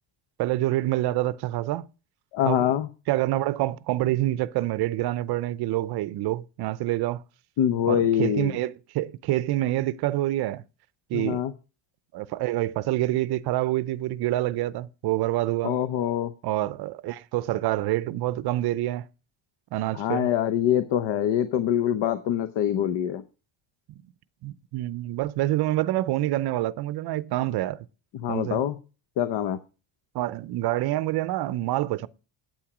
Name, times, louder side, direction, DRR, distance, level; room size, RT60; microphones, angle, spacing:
voice 1, 0.4-1.9 2.4-2.7 3.1-7.2 7.9-10.6 11.1-11.5 12.1-15.8 16.4-19.0 19.7-20.3 24.4-27.9 28.3-28.6 30.1-32.1, right 15 dB, 55° right, 0.6 m, -27 dB
voice 2, 2.3-2.9 7.6-8.5 11.1-11.5 15.6-16.3 19.9-23.2 28.2-28.8 29.2-29.6, left 10 dB, 60° left, 0.8 m, -24 dB
8.9 x 8.8 x 4.9 m
cardioid pair, 175°, 48 cm